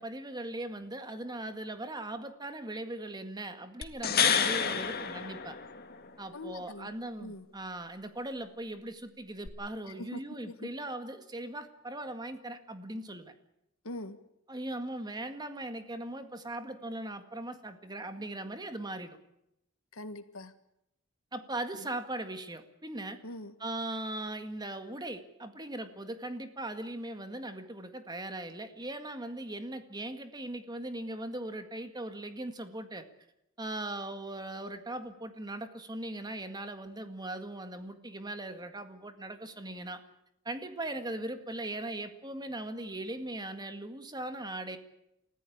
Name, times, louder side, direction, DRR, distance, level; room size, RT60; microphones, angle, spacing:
voice 1, 0.0-5.6 6.2-13.3 14.5-19.2 21.3-23.2 23.6-33.1 33.6-40.0 40.5-44.8, right 1 dB, 20° right, 8 dB, 1.9 m, -39 dB
sound 1, 3.8-6.1 9.5-9.6, left 7 dB, 45° left, 2.0 m, -29 dB
voice 2, 6.3-6.9 7.2-7.5 9.8-10.2 10.5-10.6 13.8-14.2 19.9-20.5 23.2-23.5, left 1 dB, 80° left, 10 dB, 1.8 m, -42 dB
29.5 x 15.0 x 8.7 m, 0.82 s
head